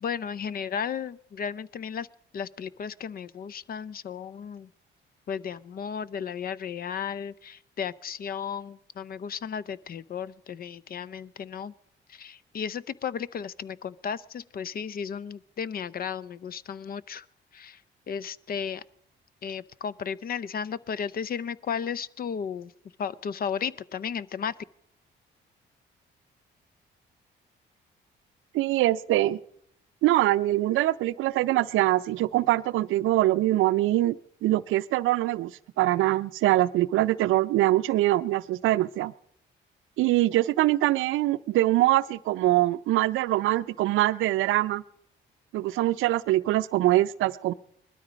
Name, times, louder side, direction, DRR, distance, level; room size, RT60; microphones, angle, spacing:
voice 1, 0.0-2.1 2.3-4.7 5.3-11.7 12.1-17.3 17.5-17.8 18.1-18.8 19.4-22.7 23.0-24.6, left 7 dB, 50° left, 19 dB, 0.6 m, -34 dB
voice 2, 28.5-29.4 30.0-34.2 34.4-35.5 35.8-39.1 40.0-44.8 45.5-47.5, right 16 dB, 85° right, 16 dB, 0.5 m, -23 dB
20.0 x 13.0 x 5.1 m, 0.73 s
cardioid pair, 90°, 20 cm